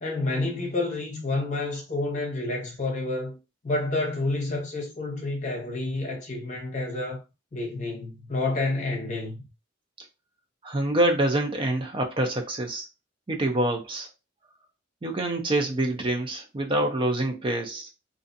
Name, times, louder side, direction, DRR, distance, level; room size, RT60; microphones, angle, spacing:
voice 1, 0.0-3.4 3.6-7.2 7.5-9.5, left 2 dB, 40° left, 0.9 m, -29 dB
voice 2, 10.6-12.9 13.3-14.1 15.0-17.9, right 1 dB, 30° right, 0.4 m, -26 dB
2.5 x 2.3 x 2.6 m
head